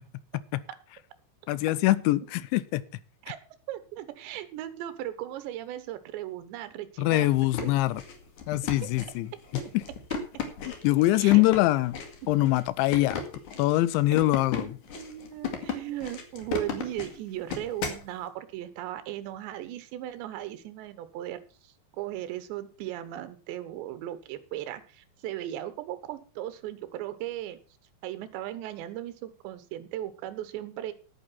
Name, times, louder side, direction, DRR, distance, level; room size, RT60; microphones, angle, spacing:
voice 1, 1.5-2.8 7.0-8.0 8.5-9.3 10.8-12.0 12.3-13.2 13.6-14.8, left 17 dB, 80° left, 2.8 m, -23 dB
voice 2, 3.7-7.3 7.6-7.7 8.6-8.7 9.6-9.7 11.1-11.4 14.6-27.6 28.0-30.9, right 13 dB, 75° right, 3.2 m, -37 dB
sound 1, 7.3-18.1, left 6 dB, 50° left, 2.9 m, -36 dB
11.0 x 9.6 x 5.8 m
omnidirectional pair, 5.6 m